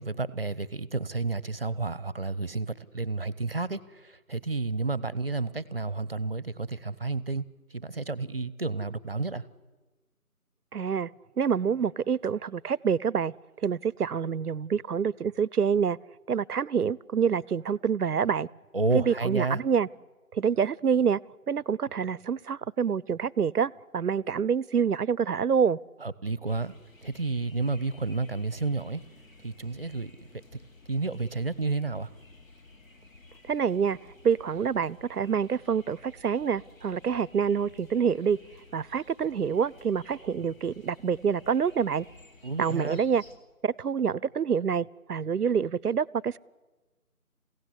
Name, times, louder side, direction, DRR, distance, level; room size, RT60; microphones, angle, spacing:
voice 1, 0.0-7.5 7.7-9.4 18.7-19.6 26.0-26.7 27.0-29.0 29.4-30.1 30.9-32.1 42.4-43.0, right 3 dB, 40° right, 19 dB, 0.8 m, -31 dB
voice 2, 10.7-11.1 11.4-13.3 13.6-16.0 16.3-18.5 18.9-19.9 20.3-21.2 21.5-25.8 33.5-34.0 34.2-38.4 38.7-42.1 42.6-43.2 43.6-46.4, right 7 dB, 85° right, 23 dB, 0.7 m, -27 dB
sound 1, 26.4-43.4, left 3 dB, 60° left, 3.5 m, -54 dB
28.0 x 16.5 x 9.9 m, 1.3 s
figure-of-eight pair, 170°, 45 cm